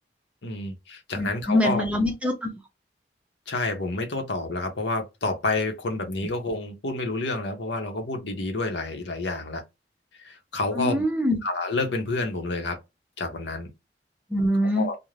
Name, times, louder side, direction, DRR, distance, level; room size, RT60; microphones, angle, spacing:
voice 1, 0.4-1.8 3.5-9.6 10.2-11.0 11.4-12.8 13.2-13.7 14.7-15.0, left 2 dB, 80° left, 0.8 m, -29 dB
voice 2, 1.2-2.5 10.7-11.4 14.3-14.9, left 1 dB, 5° right, 0.6 m, -24 dB
2.5 x 2.1 x 3.1 m
head